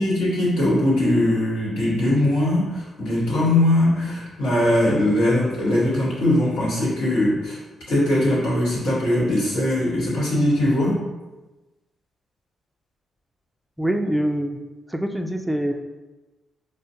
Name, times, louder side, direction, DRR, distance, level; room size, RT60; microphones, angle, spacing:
voice 1, 0.0-7.6 7.9-11.0, left 1 dB, 85° left, -8 dB, 1.2 m, -20 dB
voice 2, 13.8-14.6 14.9-15.7, right 1 dB, 10° right, 4 dB, 0.4 m, -24 dB
5.0 x 2.1 x 2.7 m, 1.1 s
hypercardioid pair, 45°, 0 cm